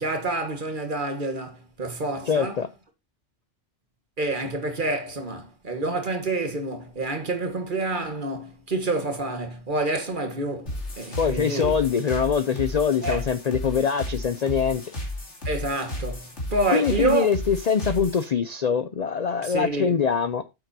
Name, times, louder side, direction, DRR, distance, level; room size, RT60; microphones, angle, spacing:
voice 1, 0.0-2.6 4.2-11.7 13.0-13.2 15.4-17.3 19.4-20.0, right 2 dB, 40° right, 1.7 m, -28 dB
voice 2, 2.3-2.7 11.2-14.9 16.7-20.4, left 7 dB, 50° left, 0.5 m, -23 dB
sound 1, 10.7-18.2, left 1 dB, 65° left, 2.9 m, -33 dB
9.0 x 7.8 x 2.7 m
omnidirectional pair, 1.3 m